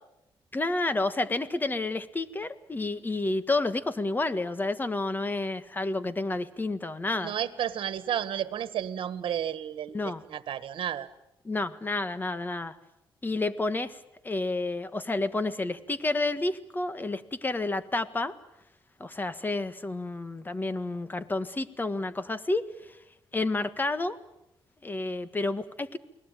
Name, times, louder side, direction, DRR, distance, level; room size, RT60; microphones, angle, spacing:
voice 1, 0.5-7.3 9.9-10.2 11.4-12.7 13.2-14.0 14.2-18.3 19.0-23.0 23.3-24.2 24.8-26.0, left 2 dB, 20° left, 12 dB, 1.6 m, -30 dB
voice 2, 7.2-10.0 10.3-11.1, right 10 dB, 75° right, 13 dB, 1.6 m, -32 dB
29.5 x 20.0 x 9.2 m, 0.86 s
cardioid pair, 105°, 9 cm